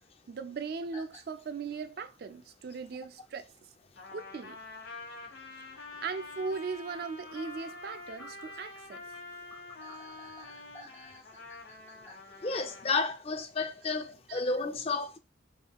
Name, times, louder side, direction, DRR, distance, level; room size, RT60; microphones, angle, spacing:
voice 1, 0.3-3.5 4.1-4.6 6.0-9.1 14.3-14.4 14.9-15.0, right 5 dB, 55° right, 0.3 m, -38 dB
sound 1, 0.9-1.2 1.7-1.8 3.2-3.3 4.0-4.1 4.3-4.4 7.2-12.1, left 2 dB, 15° left, 1.0 m, -53 dB
Trumpet, 3.9-12.9, left 3 dB, 80° left, 1.4 m, -46 dB
voice 2, 12.4-15.2, left 3 dB, 30° left, 0.5 m, -31 dB
6.1 x 3.7 x 2.3 m
head